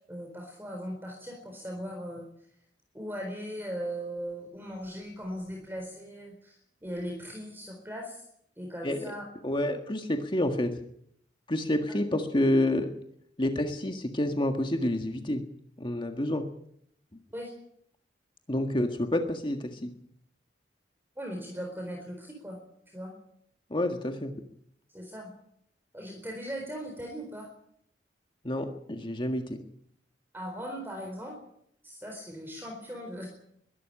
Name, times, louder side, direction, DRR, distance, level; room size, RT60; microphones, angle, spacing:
voice 1, 0.1-2.3 2.9-8.2 8.6-9.2 11.9-12.0 17.3-17.5 21.2-22.6 22.9-23.1 24.9-25.3 25.9-27.5 30.3-31.3 31.8-33.3, equal, 10° right, 2 dB, 4.2 m, -38 dB
voice 2, 9.4-10.7 11.5-12.9 13.4-15.4 15.8-16.4 18.5-19.9 23.7-24.3 28.4-29.6, left 1 dB, 30° left, 5 dB, 1.7 m, -28 dB
22.0 x 12.5 x 9.9 m, 0.71 s
head